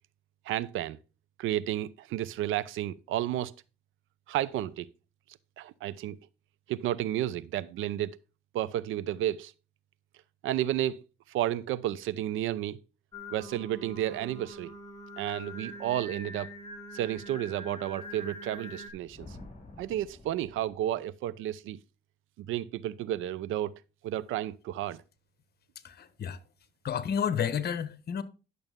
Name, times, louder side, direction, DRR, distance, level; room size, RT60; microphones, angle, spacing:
voice 1, 0.5-1.0 1.4-3.5 4.3-4.9 5.6-6.2 6.7-8.2 8.5-9.5 10.4-11.0 11.3-12.8 13.3-14.7 15.2-16.5 16.9-19.4 19.8-21.8 22.4-23.7 24.0-25.0, right 13 dB, 85° right, 0.6 m, -32 dB
Singing, 13.1-18.9, equal, 20° left, 2.4 m, -44 dB
Thunder, 18.8-21.1, left 2 dB, 35° left, 3.9 m, -50 dB
voice 2, 25.8-26.4 26.8-28.2, left 8 dB, 55° left, 1.2 m, -31 dB
11.0 x 6.7 x 3.7 m
cardioid pair, 90°, 20 cm